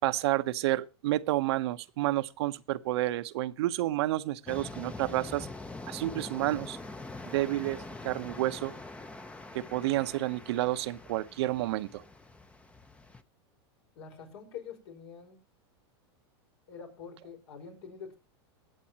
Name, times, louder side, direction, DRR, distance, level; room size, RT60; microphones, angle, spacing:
voice 1, 0.0-5.5 5.9-6.8 7.3-8.7 9.5-12.0, right 16 dB, 70° right, 0.9 m, -30 dB
sound 1, 4.5-13.2, left 2 dB, 10° left, 0.8 m, -44 dB
voice 2, 14.0-15.4 16.7-18.2, left 6 dB, 70° left, 5.3 m, -45 dB
22.5 x 8.5 x 2.9 m
supercardioid pair, 125°, 14 cm